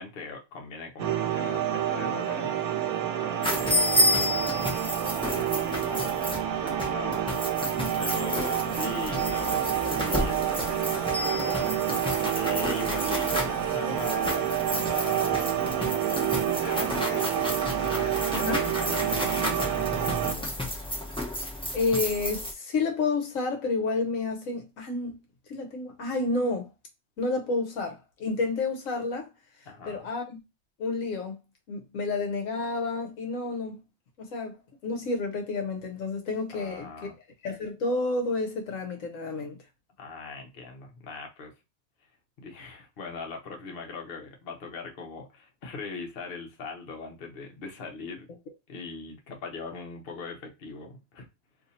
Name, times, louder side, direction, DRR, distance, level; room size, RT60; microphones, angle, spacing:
voice 1, 0.0-2.6 3.0-3.9 4.2-6.2 6.5-11.8 12.3-15.7 16.0-20.6 29.7-30.1 36.5-37.1 40.0-41.5 42.4-48.3 48.7-51.3, left 4 dB, 45° left, 0.9 m, -40 dB
sound 1, 1.0-20.3, right 10 dB, 75° right, 1.1 m, -28 dB
sound 2, 3.4-22.5, left 1 dB, 5° left, 0.4 m, -31 dB
voice 2, 18.3-18.6 21.4-25.2 25.5-26.7 27.2-29.3 29.8-30.4 30.8-31.4 31.7-33.8 34.2-37.1 37.4-39.6, left 3 dB, 65° left, 1.1 m, -30 dB
2.7 x 2.6 x 4.0 m
omnidirectional pair, 1.5 m